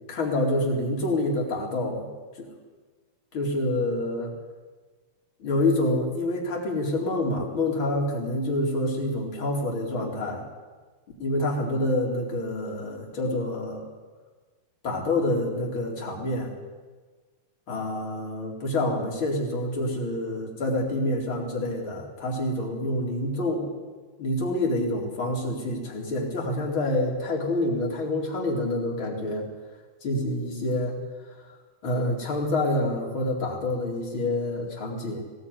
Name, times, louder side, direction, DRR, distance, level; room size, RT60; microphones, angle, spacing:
voice 1, 0.1-2.1 2.4-2.5 3.3-4.3 5.4-10.4 11.2-13.8 14.8-16.5 17.7-23.7 24.2-29.5 30.0-31.0 31.8-35.2, left 1 dB, 35° left, -1 dB, 4.6 m, -27 dB
21.0 x 18.0 x 9.7 m, 1.4 s
omnidirectional pair, 4.4 m